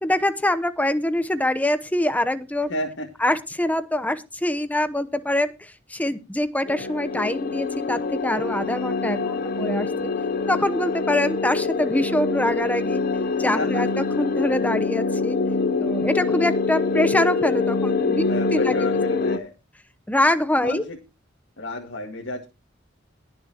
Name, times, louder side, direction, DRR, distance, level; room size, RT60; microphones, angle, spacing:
voice 1, 0.0-2.7 3.2-10.1 10.5-13.0 13.4-15.4 15.8-18.2 18.5-19.0 20.1-20.8, left 1 dB, 10° left, 12 dB, 0.9 m, -24 dB
voice 2, 2.7-3.1 13.6-13.8 18.2-19.5 20.6-21.0 21.6-22.5, left 2 dB, 70° left, 1 dB, 2.0 m, -31 dB
sound 1, 6.7-19.4, left 4 dB, 50° left, 0.8 m, -25 dB
20.5 x 7.0 x 2.9 m, 0.28 s
head